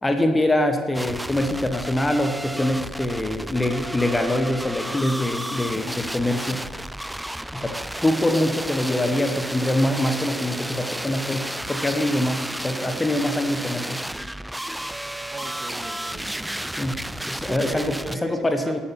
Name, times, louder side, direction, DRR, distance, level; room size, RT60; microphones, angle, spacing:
voice 1, 0.0-6.6 7.5-7.7 8.0-14.0 16.8-17.0 17.3-17.9 18.2-18.8, left 1 dB, 20° left, 6 dB, 1.4 m, -24 dB
sound 1, 0.9-18.2, right 1 dB, 5° right, 0.4 m, -32 dB
voice 2, 15.3-16.7 17.4-18.8, right 2 dB, 30° right, 5 dB, 1.8 m, -38 dB
12.0 x 8.6 x 6.0 m, 1.5 s
hypercardioid pair, 55°, 0 cm